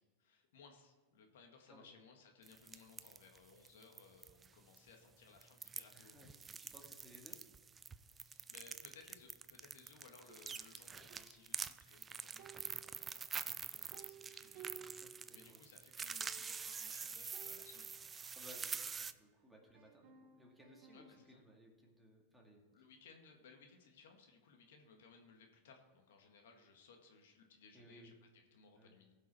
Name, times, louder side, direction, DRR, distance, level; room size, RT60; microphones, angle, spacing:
voice 1, 0.2-6.3 8.2-14.6 15.3-18.0 20.9-21.5 22.7-29.1, left 5 dB, 80° left, 3 dB, 1.8 m, -62 dB
sound 1, 2.4-4.5 4.7-4.8 5.4-19.1, right 6 dB, 20° right, 0.4 m, -46 dB
voice 2, 5.9-7.4 15.0-15.6 18.4-22.6 27.7-28.1 28.8-29.0, equal, 5° right, -1 dB, 2.1 m, -61 dB
sound 2, 10.3-12.0 12.4-15.7 15.9-16.0 16.2-16.8 17.3-19.3 19.7-21.4, right 7 dB, 50° right, 1.3 m, -60 dB
16.0 x 6.0 x 4.3 m, 1.4 s
supercardioid pair, 130°, 0 cm